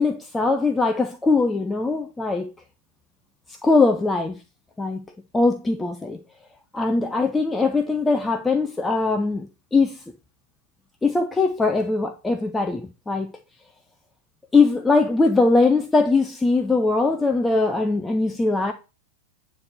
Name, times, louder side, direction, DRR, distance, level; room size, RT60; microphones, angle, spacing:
voice 1, 0.0-2.5 3.6-4.4 4.8-5.0 5.3-6.2 6.7-10.0 11.0-13.3 14.5-18.7, left 3 dB, 10° left, 0.7 m, -21 dB
9.7 x 3.4 x 6.0 m
figure-of-eight pair, 90°, 0 cm